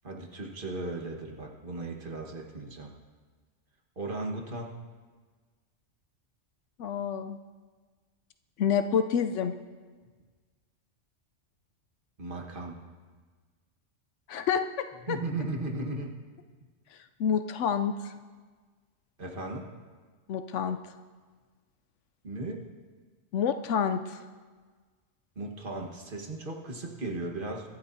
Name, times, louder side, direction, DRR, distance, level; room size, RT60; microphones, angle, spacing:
voice 1, 0.0-2.9 3.9-4.7 12.2-12.8 15.1-16.1 19.2-19.7 22.2-22.6 25.3-27.7, right 2 dB, 45° right, 1 dB, 1.7 m, -36 dB
voice 2, 6.8-7.4 8.6-9.5 14.3-14.6 15.1-15.2 17.2-18.1 20.3-20.8 23.3-24.2, left 7 dB, 85° left, 8 dB, 0.9 m, -28 dB
24.5 x 12.0 x 2.7 m, 1.5 s
omnidirectional pair, 1.2 m